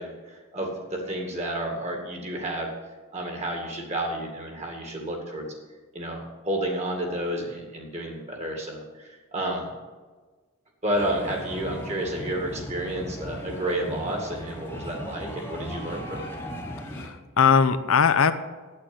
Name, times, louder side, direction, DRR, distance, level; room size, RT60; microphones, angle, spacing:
voice 1, 0.0-2.7 3.1-5.5 5.9-9.7 10.8-16.3, right 1 dB, 30° right, 1 dB, 2.1 m, -31 dB
sound 1, 10.9-17.1, equal, 10° left, 1.1 m, -37 dB
voice 2, 16.9-18.3, left 6 dB, 75° left, 11 dB, 0.6 m, -20 dB
8.8 x 8.3 x 7.7 m, 1.3 s
head